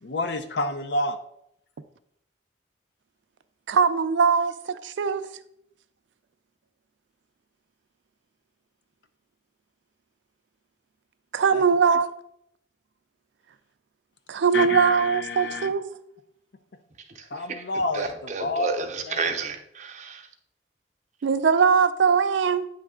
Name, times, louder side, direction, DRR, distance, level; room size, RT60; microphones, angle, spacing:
voice 1, 0.0-1.2 11.5-11.6 14.5-15.7 17.3-18.7 19.1-19.3, left 2 dB, 70° left, 0.6 m, -29 dB
voice 2, 3.7-5.3 11.3-12.1 14.3-15.8 21.2-22.7, right 6 dB, 80° right, 0.4 m, -21 dB
voice 3, 17.9-20.3, right 4 dB, 40° right, 0.6 m, -31 dB
8.9 x 3.2 x 3.6 m
head